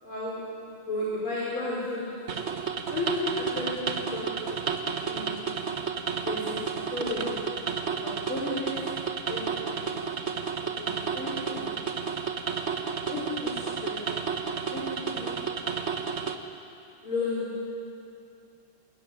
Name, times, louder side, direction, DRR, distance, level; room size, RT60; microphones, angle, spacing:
voice 1, 0.0-0.4 0.9-2.3 2.9-4.4 5.0-5.6 6.2-7.6 8.0-8.9 9.3-10.1 10.8-11.7 13.1-14.0 14.7-15.5 17.0-17.6, left 2 dB, 70° left, -6 dB, 5.2 m, -34 dB
sound 1, 2.3-16.4, right 6 dB, 40° right, 1.2 m, -32 dB
22.0 x 21.0 x 10.0 m, 2.6 s
omnidirectional pair, 2.4 m